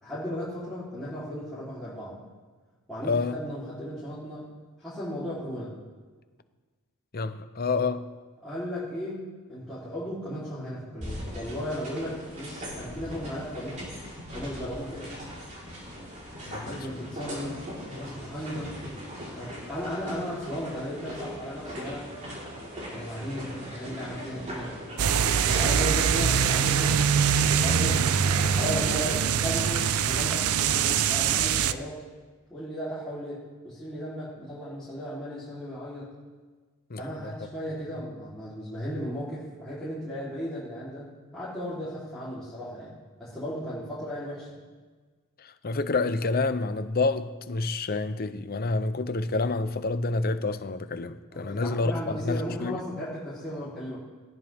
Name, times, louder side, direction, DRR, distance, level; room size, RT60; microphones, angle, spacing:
voice 1, 0.0-2.2 2.9-4.5 4.8-5.7 8.4-13.8 14.3-15.1 16.6-17.6 17.9-18.7 19.3-22.1 22.9-24.7 25.4-32.0 32.5-36.1 37.0-44.5 51.3-54.0, equal, ahead, -13 dB, 3.6 m, -36 dB
voice 2, 3.0-3.4 7.1-8.1 16.5-17.0 36.9-37.4 45.4-52.8, left 3 dB, 45° left, 11 dB, 0.7 m, -28 dB
sound 1, 11.0-30.9, equal, 35° right, 4.1 m, -40 dB
sound 2, 25.0-31.7, right 7 dB, 75° right, 0.5 m, -23 dB
18.5 x 13.5 x 3.6 m, 1.4 s
head